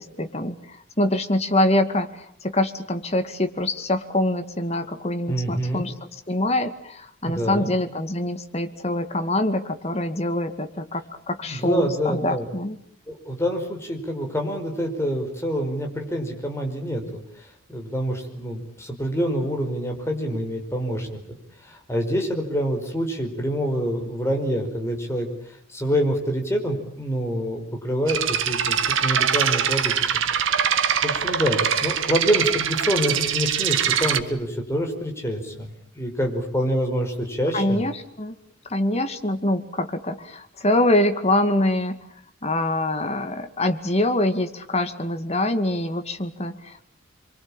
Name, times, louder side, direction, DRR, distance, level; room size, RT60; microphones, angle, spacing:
voice 1, 0.0-2.1 2.4-12.8 37.5-38.4 38.7-42.0 42.4-46.8, left 1 dB, 30° left, 7 dB, 2.1 m, -24 dB
voice 2, 5.3-5.9 7.2-7.7 11.5-12.5 13.1-17.2 17.7-21.2 21.7-25.3 25.7-37.8, equal, 15° left, 2 dB, 5.2 m, -26 dB
sound 1, 28.1-34.2, right 8 dB, 70° right, 1.7 m, -23 dB
27.0 x 24.0 x 8.9 m, 0.66 s
head